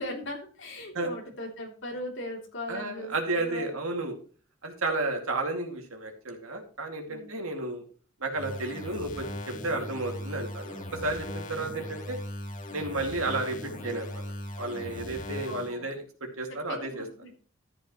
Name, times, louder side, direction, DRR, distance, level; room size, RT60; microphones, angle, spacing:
voice 1, 0.0-3.7 7.1-7.4 11.6-11.9 15.4-15.9 16.7-17.4, left 1 dB, 60° left, 1 dB, 3.1 m, -39 dB
voice 2, 2.7-4.1 4.6-7.8 8.2-12.2 12.7-14.2 14.6-17.0, right 2 dB, 80° right, 3 dB, 2.4 m, -32 dB
sound 1, 8.4-15.8, left 1 dB, 35° left, 1.7 m, -39 dB
13.5 x 8.8 x 3.1 m, 0.42 s
head